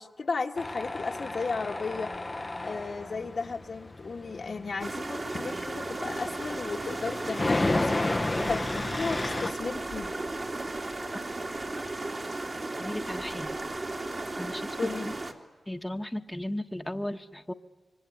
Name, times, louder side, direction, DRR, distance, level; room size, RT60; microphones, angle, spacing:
voice 1, 0.0-2.2 2.6-8.1 8.5-10.1 14.8-15.1, left 4 dB, 65° left, 2 dB, 1.7 m, -34 dB
Tools, 0.6-9.5, left 2 dB, 30° left, 0.9 m, -33 dB
sound 1, 4.8-15.3, right 2 dB, 45° right, 3.0 m, -35 dB
voice 2, 12.8-13.6 14.4-15.1 15.7-17.5, left 1 dB, 15° left, 4 dB, 1.4 m, -35 dB
26.0 x 23.5 x 9.4 m, 1.3 s
cardioid pair, 45°, 0 cm